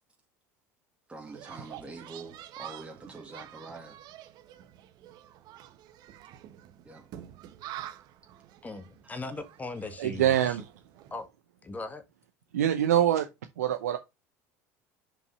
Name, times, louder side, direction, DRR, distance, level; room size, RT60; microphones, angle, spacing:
voice 1, 1.1-4.0 6.9-7.1, right 3 dB, 15° right, 2.0 m, -45 dB
sound 1, 1.2-11.2, right 12 dB, 55° right, 1.1 m, -47 dB
voice 2, 8.6-10.6 11.1-11.3 11.6-12.0, left 3 dB, 20° left, 1.8 m, -39 dB
voice 3, 10.0-10.7 12.5-13.3 13.6-14.0, right 11 dB, 80° right, 0.6 m, -24 dB
5.5 x 5.4 x 4.8 m
hypercardioid pair, 70°, 8 cm